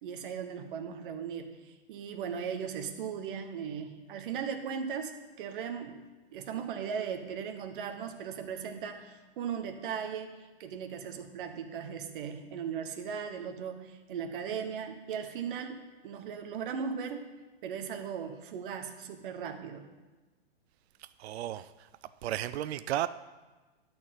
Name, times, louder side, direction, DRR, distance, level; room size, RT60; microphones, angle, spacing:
voice 1, 0.0-5.1 5.4-6.0 6.3-17.3 17.6-19.9, right 7 dB, 55° right, 1.2 m, -38 dB
voice 2, 21.0-21.9 22.2-23.1, right 12 dB, 80° right, 0.5 m, -34 dB
11.5 x 4.5 x 7.6 m
hypercardioid pair, 150°, 32 cm